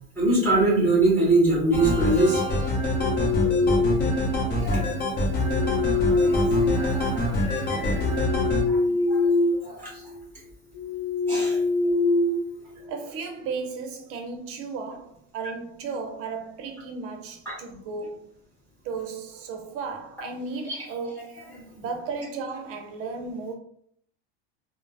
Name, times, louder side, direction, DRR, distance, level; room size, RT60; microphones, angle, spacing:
voice 1, 0.2-2.4 4.5-5.4 6.1-8.0 8.6-9.3 9.6-10.0 11.3-11.6 17.5-17.6 20.7-20.8 21.5-21.6, right 2 dB, 5° left, 1.3 m, -24 dB
sound 1, 1.7-8.6, left 1 dB, 30° left, 0.8 m, -25 dB
sound 2, 2.8-4.3 5.3-7.4 7.9-9.7 10.0-10.3 10.8-13.1, left 3 dB, 75° left, 0.5 m, -25 dB
voice 2, 12.8-18.3 18.8-21.4 21.8-23.5, right 4 dB, 45° right, 0.6 m, -35 dB
3.0 x 2.0 x 2.6 m
hypercardioid pair, 100°, 32 cm